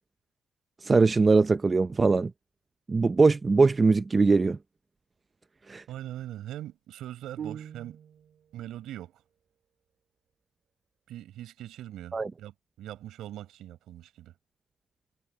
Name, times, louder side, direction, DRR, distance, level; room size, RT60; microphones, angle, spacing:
voice 1, 0.8-2.3 2.9-4.6 5.7-5.8 12.1-12.3, right 3 dB, 30° right, 0.5 m, -21 dB
voice 2, 5.9-8.0 8.5-9.2 11.1-14.3, right 13 dB, 80° right, 7.5 m, -41 dB
sound 1, 7.4-8.4, right 8 dB, 60° right, 3.9 m, -41 dB
cardioid pair, 90°, 0 cm